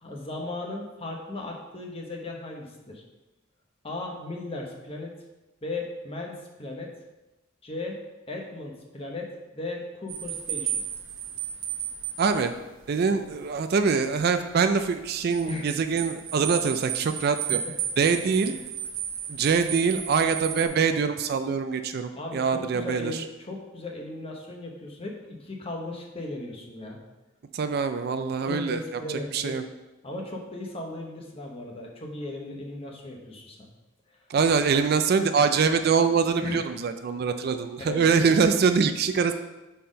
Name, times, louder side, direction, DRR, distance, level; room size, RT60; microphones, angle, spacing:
voice 1, 0.0-3.0 3.8-5.1 5.6-6.9 7.6-8.0 8.3-10.8 13.1-13.2 15.4-15.7 17.5-17.7 18.4-18.6 22.1-27.0 28.4-29.6 30.0-33.7 36.4-36.6 37.9-38.0, left 2 dB, 30° left, 0 dB, 1.0 m, -36 dB
sound 1, 10.1-20.7, right 9 dB, 75° right, 0.9 m, -34 dB
voice 2, 12.2-12.5 12.9-17.6 18.0-18.5 19.3-23.1 27.5-28.8 29.3-29.6 34.3-39.3, right 5 dB, 50° right, 9 dB, 0.4 m, -24 dB
5.6 x 4.3 x 5.1 m, 1.1 s
head